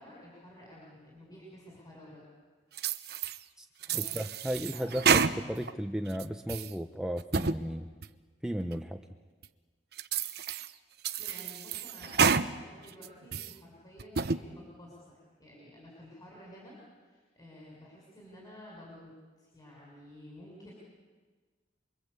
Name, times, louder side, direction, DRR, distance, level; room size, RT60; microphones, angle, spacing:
voice 1, 0.0-2.2 3.9-4.1 4.7-4.9 11.2-20.7, left 1 dB, 20° left, -3 dB, 6.3 m, -52 dB
sound 1, 2.8-3.4 3.8-5.7 6.1-6.7 7.2-7.6 8.0-8.1 8.7-8.8 9.4-9.5 10.0-10.7 11.0-12.5 12.9-13.5 14.0-14.4, right 6 dB, 65° right, 1.0 m, -29 dB
voice 2, 3.9-7.9 8.4-9.0, equal, 5° right, 5 dB, 0.8 m, -35 dB
27.5 x 23.5 x 8.3 m, 1.4 s
head